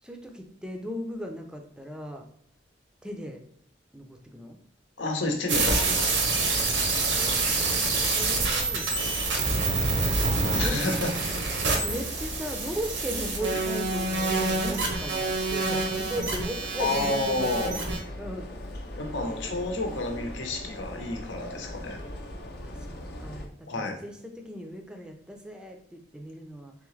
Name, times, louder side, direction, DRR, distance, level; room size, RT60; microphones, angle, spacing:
voice 1, 0.0-2.2 3.0-3.4 3.9-4.6 7.1-8.9 10.6-11.0 11.8-17.8 18.2-18.5 22.6-22.9 23.2-26.7, equal, 5° right, 3 dB, 0.4 m, -37 dB
voice 2, 5.0-6.3 10.1-11.1 16.8-17.7 19.0-22.0 23.7-24.0, left 2 dB, 85° left, 3 dB, 0.8 m, -30 dB
sound 1, 5.5-18.0, right 3 dB, 85° right, 0.9 m, -27 dB
sound 2, 8.9-23.5, left 1 dB, 55° left, 0.6 m, -39 dB
3.8 x 3.5 x 3.1 m, 0.64 s
head